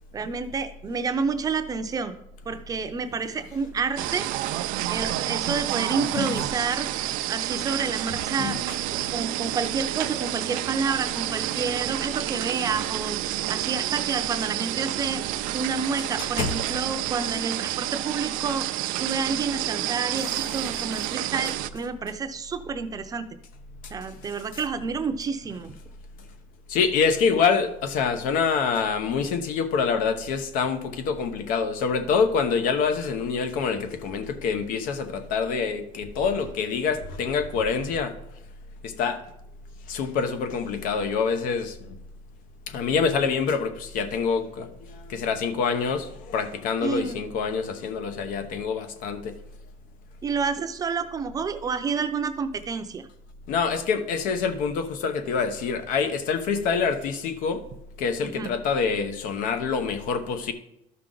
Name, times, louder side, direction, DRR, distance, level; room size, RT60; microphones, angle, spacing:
voice 1, 0.1-2.1 2.5-4.3 4.9-6.9 7.3-8.6 9.1-13.2 13.5-15.2 15.5-23.3 23.9-25.8 46.8-47.2 50.2-53.1 58.2-58.5, right 5 dB, 25° right, 0.6 m, -29 dB
sound 1, 4.0-21.7, right 15 dB, 85° right, 0.4 m, -29 dB
voice 2, 6.0-6.4 8.4-9.1 16.2-16.5 20.2-20.4 20.7-20.8 23.8-23.9 24.5-24.6 26.7-38.2 38.8-39.2 39.9-42.0 42.7-49.3 53.5-57.6 58.0-60.5, left 5 dB, 80° left, 1.0 m, -26 dB
12.5 x 5.8 x 3.8 m
cardioid pair, 145°, 14 cm